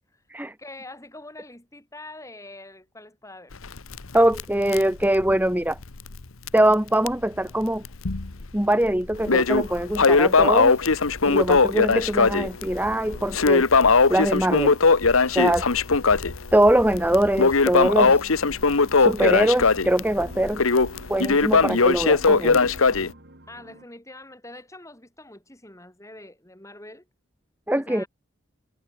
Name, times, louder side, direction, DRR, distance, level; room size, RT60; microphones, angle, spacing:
voice 1, 0.6-3.7 23.5-27.1 27.7-28.1, left 2 dB, 15° left, 7.0 m, -44 dB
Crackle, 3.5-6.2 6.5-6.6 7.1-7.2 7.8-8.5 8.8-23.1, left 4 dB, 90° left, 1.2 m, -20 dB
voice 2, 4.1-5.8 6.5-7.8 8.5-10.8 11.2-13.7 14.1-14.8 15.3-15.7 16.5-18.2 19.0-20.6 21.1-22.7 27.7-28.0, right 1 dB, 10° right, 1.2 m, -22 dB
sound 1, 17.7-23.9, right 1 dB, 55° right, 3.2 m, -47 dB
head